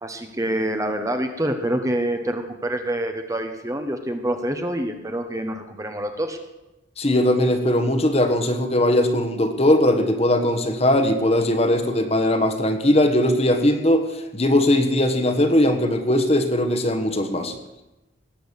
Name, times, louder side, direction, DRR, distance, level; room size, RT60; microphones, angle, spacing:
voice 1, 0.0-6.4, right 1 dB, 15° right, 6 dB, 1.2 m, -26 dB
voice 2, 7.0-17.5, left 1 dB, 30° left, 6 dB, 1.5 m, -20 dB
19.5 x 7.8 x 8.3 m, 1.0 s
head